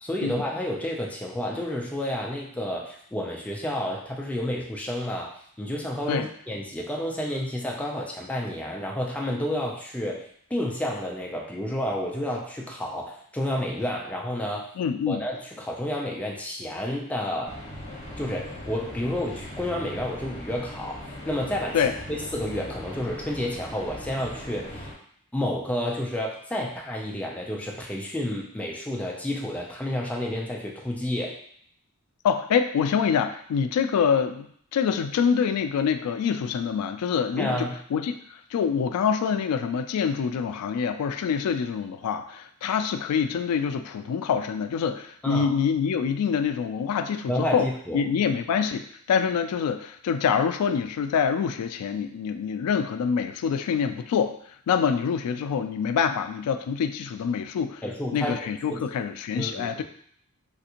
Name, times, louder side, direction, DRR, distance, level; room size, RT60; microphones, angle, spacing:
voice 1, 0.0-5.3 5.6-10.3 10.5-14.7 15.1-17.5 18.2-21.8 22.1-24.9 25.3-31.3 37.4-37.7 45.2-45.5 47.3-48.0 57.8-58.4 58.7-58.8 59.3-59.8, left 1 dB, 5° left, -2 dB, 0.3 m, -30 dB
voice 2, 14.8-15.2 21.7-21.9 32.2-34.5 34.7-38.2 38.5-47.7 47.9-54.4 54.7-57.8 58.1-59.8, left 7 dB, 90° left, 13 dB, 0.3 m, -25 dB
sound 1, 17.4-24.9, left 1 dB, 30° left, 1.2 m, -39 dB
3.4 x 2.5 x 2.8 m, 0.63 s
head